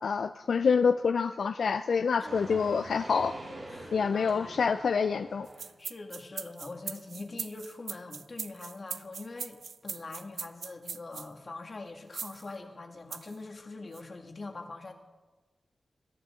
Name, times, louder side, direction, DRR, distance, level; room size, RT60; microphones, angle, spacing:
voice 1, 0.0-3.3 3.9-5.5, left 5 dB, 80° left, 9 dB, 0.4 m, -27 dB
voice 2, 2.2-2.6 3.7-4.6 5.6-9.6 9.8-14.9, left 3 dB, 40° left, 4 dB, 1.7 m, -43 dB
sound 1, 2.3-5.7, right 2 dB, 55° right, 4.6 m, -44 dB
sound 2, 5.5-11.3 12.1-12.5 13.1-13.4 13.9-14.0, right 5 dB, 75° right, 0.4 m, -40 dB
21.5 x 14.5 x 3.7 m, 1.2 s
wide cardioid pair, 130°, 0 cm